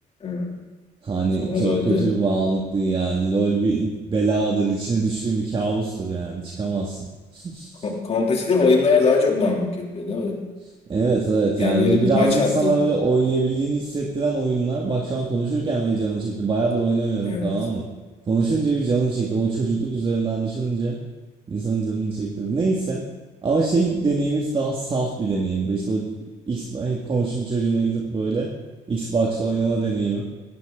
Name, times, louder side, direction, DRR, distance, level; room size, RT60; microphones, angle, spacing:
voice 1, 0.2-0.5 1.4-2.0 7.8-10.4 11.6-12.8 17.2-17.5, left 4 dB, 40° left, -1 dB, 3.2 m, -21 dB
voice 2, 1.0-7.1 7.3-7.8 10.9-17.8 18.3-21.0 21.5-23.0 23.4-26.1 26.5-28.5 28.9-30.2, right 3 dB, 30° right, -1 dB, 2.2 m, -23 dB
17.5 x 15.0 x 3.9 m, 1.3 s
cardioid pair, 110°, 17 cm